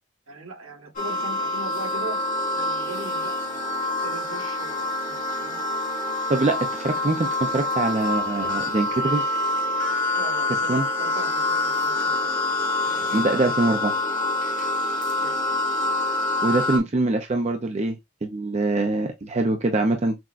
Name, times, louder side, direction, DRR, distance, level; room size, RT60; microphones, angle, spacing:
voice 1, 0.3-2.2 2.5-5.6 10.1-12.4 13.1-13.6 15.2-15.4, right 2 dB, 75° right, 1.4 m, -39 dB
sound 1, 1.0-16.8, left 2 dB, 35° left, 0.9 m, -26 dB
voice 2, 6.3-9.3 10.7-10.8 13.1-13.9 16.4-20.2, right 2 dB, 30° right, 0.5 m, -24 dB
6.0 x 2.1 x 2.4 m
head